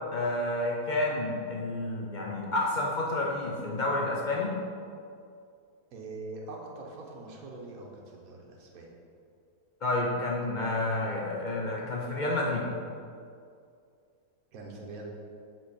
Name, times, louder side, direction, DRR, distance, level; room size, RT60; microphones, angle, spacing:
voice 1, 0.1-4.5 9.8-12.6, left 2 dB, 70° left, -2 dB, 0.4 m, -30 dB
voice 2, 5.9-8.9 14.5-15.1, right 2 dB, 65° right, -1 dB, 1.4 m, -43 dB
7.4 x 3.9 x 4.2 m, 2.4 s
omnidirectional pair, 1.7 m